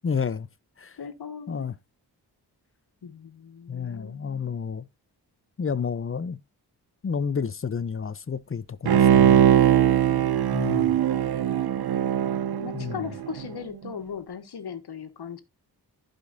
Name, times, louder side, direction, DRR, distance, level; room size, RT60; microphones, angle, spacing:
voice 1, 0.0-0.5 0.8-1.0 1.5-1.7 3.7-4.8 5.6-6.4 7.0-9.5 10.5-11.0 12.7-13.1, left 6 dB, 35° left, 0.7 m, -30 dB
voice 2, 1.0-1.7 3.0-4.6 10.1-10.5 12.5-15.4, left 7 dB, 70° left, 1.7 m, -38 dB
Bowed string instrument, 8.9-13.5 13.9-14.0, right 10 dB, 65° right, 0.8 m, -21 dB
15.5 x 5.3 x 2.6 m
cardioid pair, 70°, 40 cm